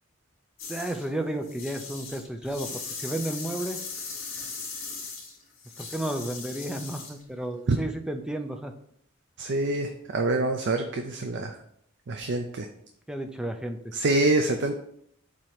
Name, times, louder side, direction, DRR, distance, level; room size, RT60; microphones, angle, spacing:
sound 1, 0.6-1.1 1.4-7.2, left 4 dB, 70° left, 2.6 m, -38 dB
voice 1, 0.7-3.8 5.8-8.7 13.1-13.9, right 1 dB, 5° right, 6 dB, 0.5 m, -32 dB
voice 2, 9.4-11.6 12.1-12.7 13.9-14.7, right 2 dB, 60° right, 5 dB, 0.5 m, -26 dB
7.4 x 2.9 x 4.9 m, 0.70 s
head